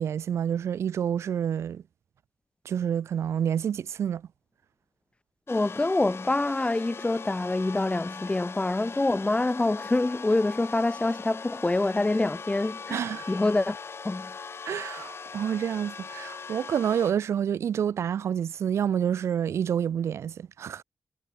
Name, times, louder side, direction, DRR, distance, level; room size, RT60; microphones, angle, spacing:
voice 1, 0.0-1.8 2.6-4.2 12.9-13.3 14.6-20.8, right 8 dB, 85° right, 0.7 m, -28 dB
sound 1, 5.5-17.1, left 5 dB, 60° left, 2.6 m, -40 dB
voice 2, 5.5-13.0 13.3-13.8 14.0-14.3, left 2 dB, 25° left, 0.5 m, -26 dB
cardioid pair, 45°, 5 cm